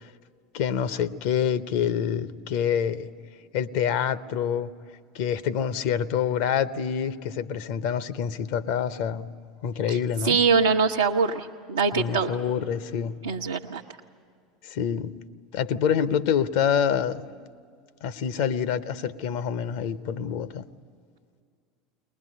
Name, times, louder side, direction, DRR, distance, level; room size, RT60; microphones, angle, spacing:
voice 1, 0.5-3.1 3.5-4.7 5.1-9.3 9.6-10.4 11.9-13.2 14.6-15.1 15.5-17.3 18.0-20.6, left 8 dB, 60° left, 0.8 m, -26 dB
voice 2, 10.2-12.3 13.2-13.8, right 5 dB, 75° right, 0.8 m, -23 dB
21.5 x 20.5 x 9.8 m
figure-of-eight pair, 75°, 0 cm